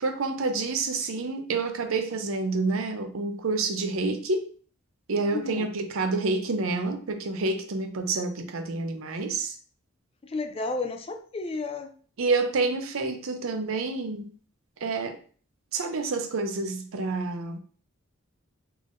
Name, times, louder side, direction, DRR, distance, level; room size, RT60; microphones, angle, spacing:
voice 1, 0.0-4.5 5.1-9.6 12.2-14.3 14.8-15.2 15.7-17.6, right 3 dB, 70° right, 6 dB, 0.6 m, -28 dB
voice 2, 5.3-5.6 10.2-11.9, left 3 dB, 25° left, 5 dB, 0.4 m, -32 dB
3.6 x 3.4 x 2.6 m, 0.43 s
head